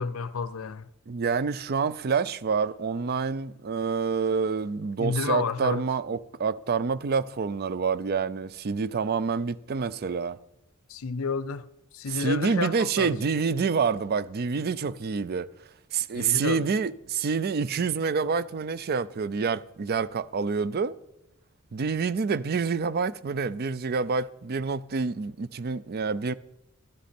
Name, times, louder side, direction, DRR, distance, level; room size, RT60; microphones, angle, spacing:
voice 1, 0.0-0.9 5.0-5.8 10.9-11.7 11.9-13.1 16.1-16.7, left 5 dB, 75° left, 0.5 m, -30 dB
voice 2, 1.1-10.4 12.1-15.5 15.9-21.0 21.7-26.3, right 5 dB, 45° right, 0.4 m, -27 dB
12.0 x 11.5 x 4.3 m
head